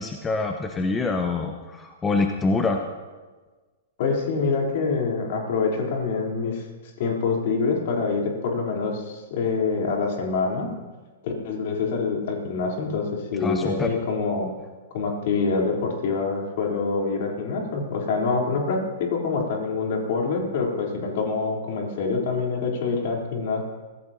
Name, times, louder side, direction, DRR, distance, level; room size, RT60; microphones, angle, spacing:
voice 1, 0.0-2.8 13.4-13.9, left 3 dB, 15° left, 4 dB, 1.1 m, -25 dB
voice 2, 4.0-6.6 7.0-10.7 11.2-14.5 14.9-23.6, left 4 dB, 55° left, 0 dB, 3.8 m, -26 dB
24.0 x 15.5 x 2.9 m, 1.3 s
figure-of-eight pair, 105°, 0 cm